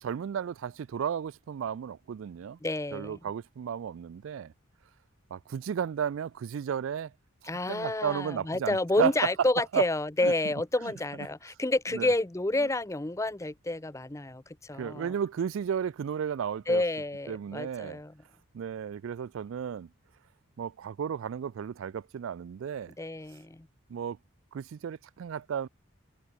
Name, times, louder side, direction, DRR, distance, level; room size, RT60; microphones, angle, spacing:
voice 1, 0.0-2.6 2.9-4.5 5.3-7.1 7.7-9.1 9.7-9.8 10.2-10.3 11.9-12.1 14.7-16.8 17.3-18.0 18.5-19.9 20.6-22.9 23.9-24.2 24.5-25.7, right 8 dB, 65° right, 0.3 m, -33 dB
voice 2, 2.6-3.2 7.5-15.1 16.7-18.1 23.0-23.7, left 2 dB, 15° left, 0.6 m, -29 dB
head